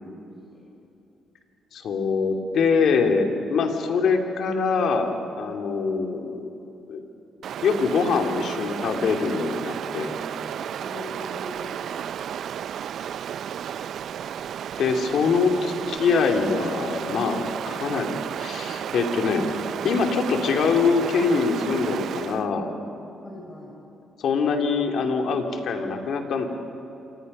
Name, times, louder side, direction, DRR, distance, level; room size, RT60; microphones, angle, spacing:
voice 1, 1.7-6.5 6.9-7.0 7.6-10.1 14.8-19.5 19.8-22.7 24.2-26.5, left 5 dB, 70° left, 4 dB, 2.6 m, -24 dB
Stream, 7.4-22.5, right 9 dB, 65° right, 0.5 m, -33 dB
voice 2, 10.8-12.1 23.2-23.8, left 2 dB, 35° left, -2 dB, 4.9 m, -42 dB
27.5 x 25.0 x 5.5 m, 2.9 s
cardioid pair, 90°, 0 cm